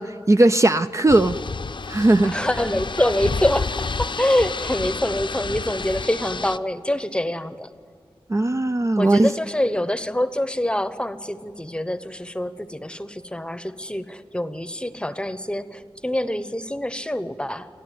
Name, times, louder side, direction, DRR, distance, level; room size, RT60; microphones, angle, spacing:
voice 1, 0.0-1.4 1.9-2.3 8.3-9.3, right 2 dB, 30° right, 8 dB, 0.5 m, -18 dB
sound 1, 1.1-6.6, left 4 dB, 55° left, 0.6 m, -30 dB
voice 2, 2.2-7.7 9.0-17.7, left 1 dB, 10° left, 12 dB, 0.9 m, -25 dB
29.5 x 12.0 x 9.2 m, 2.3 s
wide cardioid pair, 90°, 10 cm